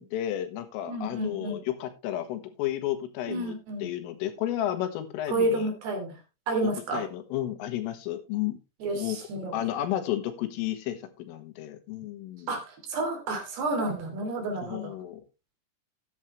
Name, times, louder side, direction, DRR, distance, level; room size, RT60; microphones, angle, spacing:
voice 1, 0.0-3.6 3.8-5.7 6.6-8.6 8.9-9.2 9.5-12.5 14.6-15.2, left 12 dB, 80° left, 8 dB, 3.9 m, -32 dB
voice 2, 0.9-1.6 3.3-3.9 5.3-6.1 6.5-7.1 8.8-9.6 12.5-14.9, right 2 dB, 55° right, 3 dB, 4.5 m, -30 dB
13.5 x 9.4 x 3.1 m, 0.26 s
omnidirectional pair, 5.8 m